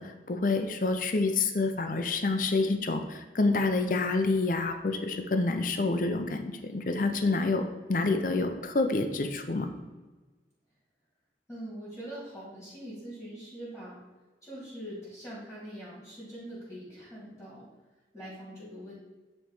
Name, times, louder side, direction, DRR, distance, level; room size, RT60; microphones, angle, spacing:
voice 1, 0.0-7.6 7.9-9.7, left 3 dB, 45° left, 6 dB, 0.6 m, -28 dB
voice 2, 11.5-14.0 14.4-17.6 18.1-18.9, right 1 dB, 5° left, -8 dB, 2.2 m, -43 dB
9.2 x 3.3 x 4.8 m, 1.2 s
head